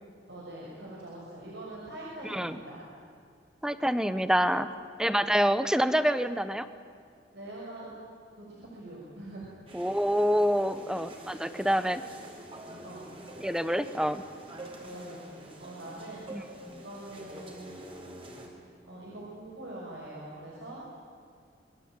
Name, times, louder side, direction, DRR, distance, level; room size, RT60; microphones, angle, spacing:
voice 1, 0.3-2.8 7.3-7.9 8.4-9.5 12.8-13.1 14.8-16.3 16.7-17.7 18.9-20.8, right 1 dB, 75° right, -5 dB, 5.9 m, -43 dB
voice 2, 2.2-2.6 3.6-4.7 5.0-6.7 9.7-12.0 13.4-14.2 16.3-16.4 16.7-16.8, equal, 5° right, 12 dB, 1.0 m, -27 dB
sound 1, 9.7-18.5, right 1 dB, 30° right, 4.8 m, -46 dB
27.0 x 23.0 x 9.0 m, 2.2 s
head